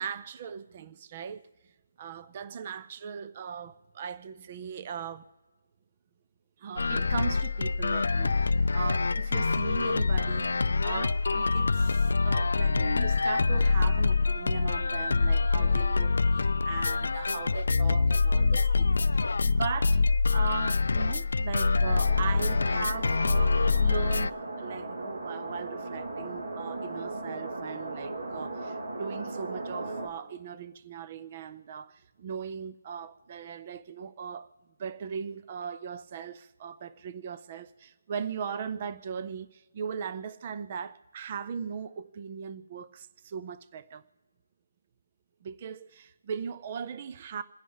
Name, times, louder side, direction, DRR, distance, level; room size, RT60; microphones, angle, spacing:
voice 1, 0.0-1.4 2.0-5.3 6.6-10.5 10.8-34.5 34.8-44.0 45.4-47.4, right 7 dB, 25° right, 0.4 m, -39 dB
sound 1, 6.8-24.3, left 4 dB, 70° left, 0.4 m, -25 dB
sound 2, 21.8-30.1, right 2 dB, 65° right, 2.3 m, -37 dB
28.0 x 10.5 x 3.9 m
hypercardioid pair, 175°, 0 cm